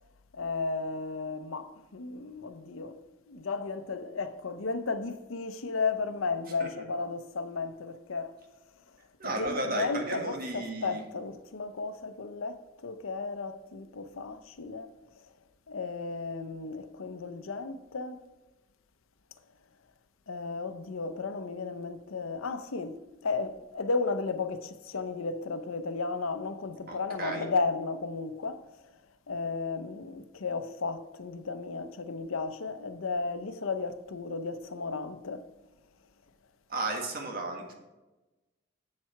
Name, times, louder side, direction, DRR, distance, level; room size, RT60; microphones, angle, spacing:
voice 1, 0.3-3.0 3.3-8.4 9.2-15.3 15.7-18.2 20.3-28.9 29.3-35.5, left 4 dB, 90° left, 0.7 m, -34 dB
voice 2, 9.2-11.0 26.9-27.5 36.7-37.7, right 2 dB, 45° right, 1.6 m, -34 dB
7.6 x 7.4 x 5.8 m
head